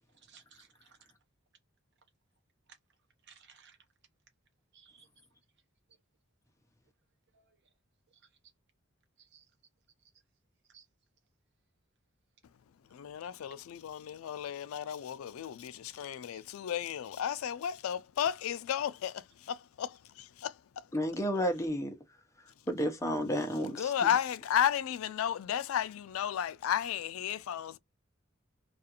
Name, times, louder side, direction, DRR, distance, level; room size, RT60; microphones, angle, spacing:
voice 1, 0.2-1.0 3.3-3.8 4.7-5.1 9.2-9.4 10.7-10.9 16.3-16.4, right 7 dB, 55° right, 0.7 m, -59 dB
voice 2, 12.9-20.9 23.6-27.8, left 9 dB, 90° left, 0.3 m, -33 dB
voice 3, 20.9-21.9 22.7-24.1, equal, 15° left, 0.6 m, -31 dB
2.4 x 2.4 x 2.8 m
head